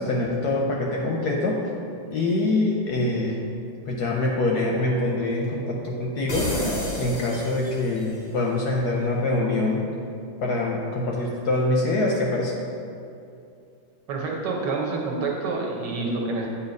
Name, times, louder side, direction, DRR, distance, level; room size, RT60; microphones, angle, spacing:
voice 1, 0.0-1.6 2.1-3.4 3.9-6.5 7.0-9.8 10.4-12.5, left 2 dB, 70° left, -1 dB, 1.0 m, -24 dB
sound 1, 6.3-8.1, left 1 dB, 30° left, 0.7 m, -29 dB
voice 2, 14.1-16.5, right 3 dB, 65° right, -1 dB, 1.3 m, -27 dB
8.0 x 2.8 x 5.2 m, 2.6 s
omnidirectional pair, 2.2 m